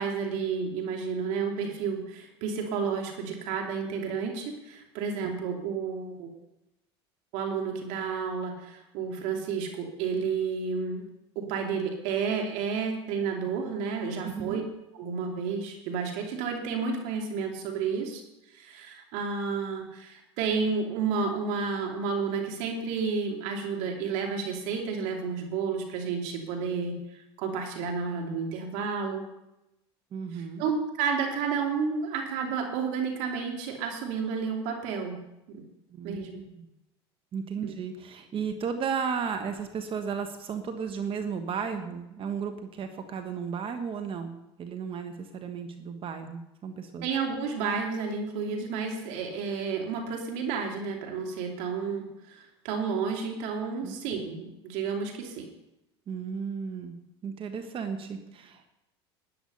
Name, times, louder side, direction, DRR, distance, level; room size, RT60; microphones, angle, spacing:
voice 1, 0.0-6.3 7.3-11.1 11.3-14.6 14.9-18.2 18.5-29.2 30.3-35.2 35.5-35.6 36.0-36.4 37.6-37.7 47.0-55.5, right 5 dB, 65° right, 2 dB, 2.9 m, -31 dB
voice 2, 14.2-14.6 30.1-30.6 35.9-36.7 37.3-47.0 53.8-54.0 56.1-57.0 57.2-58.7, right 6 dB, 40° right, 7 dB, 1.5 m, -34 dB
13.0 x 10.0 x 5.6 m, 0.89 s
hypercardioid pair, 85°, 14 cm